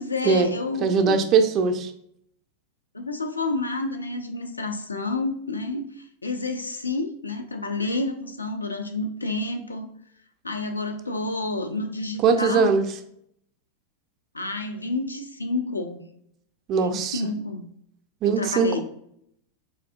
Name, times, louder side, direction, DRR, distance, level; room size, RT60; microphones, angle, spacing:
voice 1, 0.0-1.2 2.9-9.9 10.4-12.7 14.3-16.0 16.8-17.7 18.2-18.8, left 2 dB, 80° left, 5 dB, 0.4 m, -29 dB
voice 2, 0.8-1.9 12.2-12.8 16.7-17.2 18.2-18.8, right 5 dB, 35° right, 7 dB, 0.4 m, -20 dB
4.4 x 2.6 x 2.5 m, 0.71 s
figure-of-eight pair, 90°, 0 cm